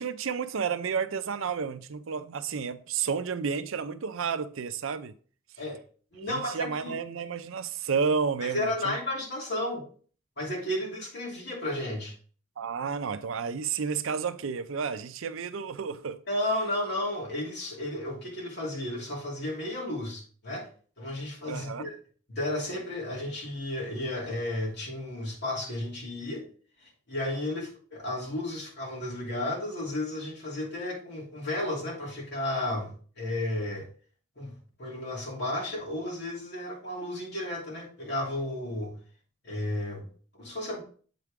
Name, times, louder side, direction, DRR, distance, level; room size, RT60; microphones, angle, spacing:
voice 1, 0.0-5.1 6.3-8.9 12.6-16.2 21.5-21.9, right 6 dB, 80° right, 0.5 m, -31 dB
voice 2, 6.1-6.9 8.4-9.9 10.4-12.1 16.3-20.7 21.0-21.9 22.3-26.4 26.8-33.9 34.4-38.9 39.4-40.1 40.3-40.8, left 1 dB, 55° left, 2.8 m, -33 dB
7.6 x 4.7 x 3.6 m
head